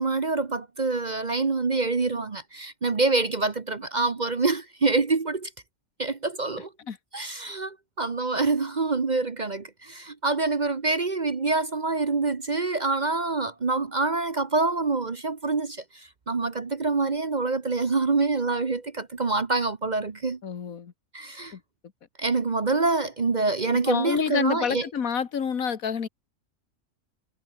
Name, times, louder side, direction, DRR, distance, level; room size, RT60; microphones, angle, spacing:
voice 1, 0.0-5.5 6.0-6.7 7.1-20.4 21.1-21.5 22.2-24.8, right 3 dB, 35° right, 1.0 m, -26 dB
voice 2, 20.4-20.9 21.5-21.6 23.8-26.1, left 7 dB, 70° left, 1.8 m, -28 dB
omnidirectional pair, 1.5 m